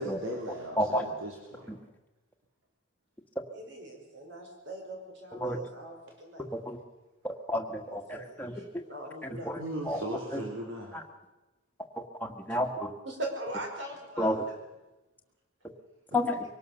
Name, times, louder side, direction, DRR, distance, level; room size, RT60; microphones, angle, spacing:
voice 1, 0.0-1.7 9.6-10.9, right 1 dB, 85° right, 0 dB, 3.3 m, -37 dB
voice 2, 3.5-6.4 7.9-9.6 13.0-14.6, right 1 dB, 65° right, 2 dB, 5.2 m, -41 dB
voice 3, 7.2-8.6 9.2-9.6 9.9-10.0 10.3-10.4 12.0-12.9 14.2-14.4 16.1-16.3, left 1 dB, 10° left, 2 dB, 1.6 m, -31 dB
23.5 x 18.5 x 6.7 m, 1.1 s
head